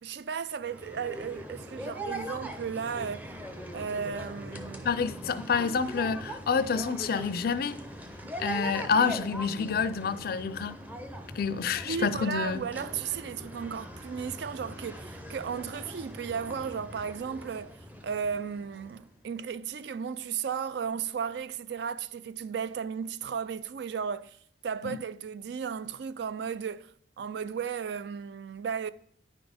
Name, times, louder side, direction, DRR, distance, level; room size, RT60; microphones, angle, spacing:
voice 1, 0.0-3.3 3.7-5.0 11.8-17.8 18.0-24.4 24.6-28.9, right 6 dB, 65° right, 0.4 m, -35 dB
sound 1, 0.6-19.1, equal, 10° right, 0.7 m, -41 dB
voice 2, 4.8-7.8 8.4-10.8 11.4-12.6 24.8-25.0, left 5 dB, 55° left, 0.4 m, -28 dB
9.6 x 4.1 x 5.1 m
head